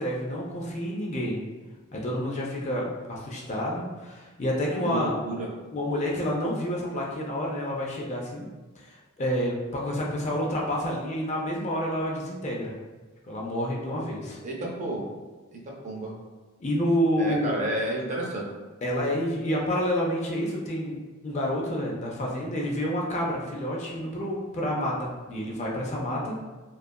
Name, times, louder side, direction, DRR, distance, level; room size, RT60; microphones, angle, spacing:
voice 1, 0.0-1.4 1.9-5.2 5.7-8.5 8.8-12.7 13.3-14.4 16.6-17.6 18.8-26.3, equal, 30° left, -3 dB, 0.4 m, -29 dB
voice 2, 4.8-5.5 14.4-15.0 15.5-16.1 17.2-18.4, right 1 dB, 35° right, -3 dB, 0.5 m, -31 dB
2.7 x 2.4 x 2.2 m, 1.2 s
head